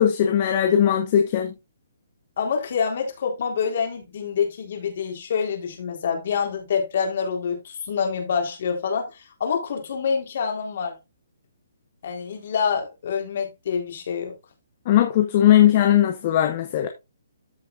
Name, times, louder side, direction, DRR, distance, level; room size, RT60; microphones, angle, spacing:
voice 1, 0.0-1.5 14.9-16.9, left 10 dB, 30° left, 1.0 m, -19 dB
voice 2, 2.4-11.0 12.0-14.3, left 6 dB, 45° left, 3.8 m, -26 dB
14.0 x 5.9 x 2.5 m
hypercardioid pair, 170°, 0 cm